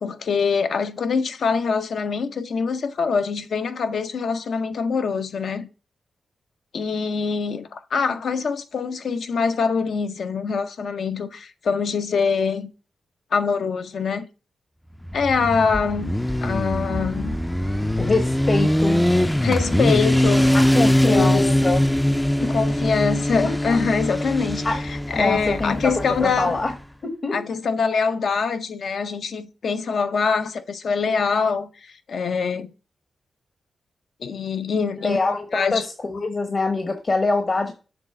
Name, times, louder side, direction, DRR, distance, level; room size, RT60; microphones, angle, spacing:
voice 1, 0.0-5.7 6.7-12.7 13.3-14.3 15.1-16.1 16.4-17.4 19.4-20.5 21.1-21.6 22.5-26.6 27.3-32.7 34.2-35.2 35.5-35.9, left 5 dB, 70° left, 0.6 m, -24 dB
Motorcycle, 15.0-26.7, left 1 dB, 5° left, 0.4 m, -22 dB
voice 2, 18.0-19.0 20.5-21.9 22.4-22.5 23.4-23.8 24.6-24.8 25.1-26.7 27.0-27.4 35.0-37.7, left 3 dB, 40° left, 0.9 m, -24 dB
7.1 x 3.2 x 5.8 m
cardioid pair, 80°, 0 cm